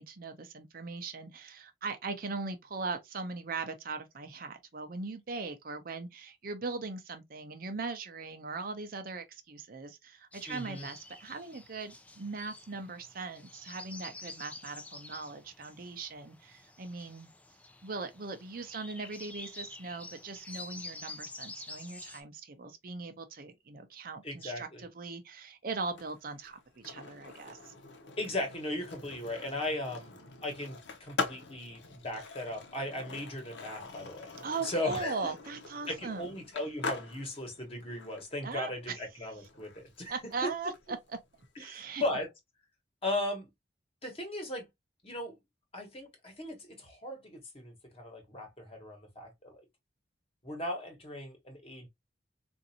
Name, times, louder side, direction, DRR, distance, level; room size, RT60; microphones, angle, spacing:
voice 1, 0.0-17.3 17.8-27.7 34.4-36.3 38.4-39.0 40.1-41.2 41.6-42.0, right 4 dB, 50° right, 0.6 m, -40 dB
sound 1, 10.3-22.2, left 2 dB, 10° left, 0.4 m, -48 dB
voice 2, 10.5-10.9 24.2-24.8 28.2-30.2 30.4-34.3 34.6-35.3 35.9-40.5 41.6-42.3 43.0-43.5 44.0-44.7 45.0-45.3 45.7-49.6 50.4-51.9, left 1 dB, 30° left, 1.2 m, -37 dB
Skateboard, 25.8-41.7, left 3 dB, 75° left, 0.9 m, -44 dB
3.9 x 2.6 x 2.7 m
head